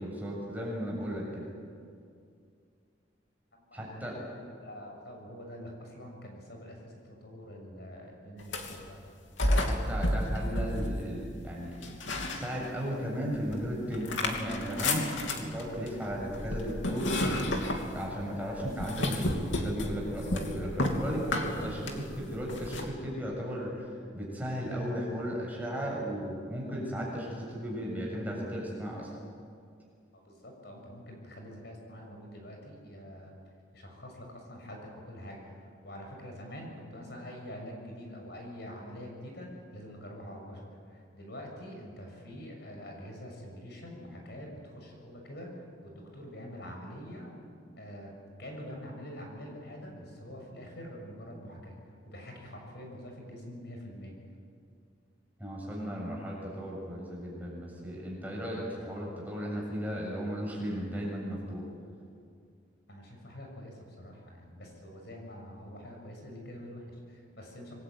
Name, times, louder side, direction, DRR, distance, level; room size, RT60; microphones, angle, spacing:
voice 1, 0.0-1.5 3.7-4.2 9.6-11.8 12.3-17.3 17.7-29.1 55.4-61.6, equal, 10° right, -3 dB, 7.1 m, -35 dB
voice 2, 3.5-4.0 4.4-9.0 20.8-21.7 30.1-33.3 33.7-47.3 47.8-51.8 52.0-54.1 62.9-67.7, equal, 60° left, 1 dB, 6.5 m, -45 dB
sound 1, 8.4-8.9 9.4-11.3 11.8-12.9 13.3-22.9, left 1 dB, 80° left, 3.1 m, -32 dB
26.5 x 21.5 x 9.3 m, 2.3 s
head